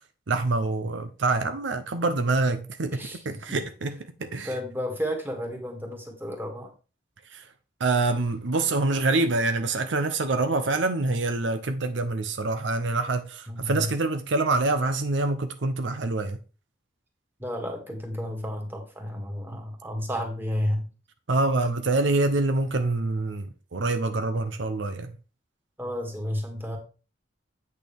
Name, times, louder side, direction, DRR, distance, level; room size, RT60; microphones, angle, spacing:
voice 1, 0.3-4.5 7.3-7.5 7.8-16.4 21.3-25.2, right 3 dB, 75° right, 0.7 m, -26 dB
voice 2, 4.4-6.7 13.5-13.9 17.4-20.9 25.8-26.8, equal, 10° right, 2.0 m, -32 dB
8.3 x 6.5 x 3.5 m
head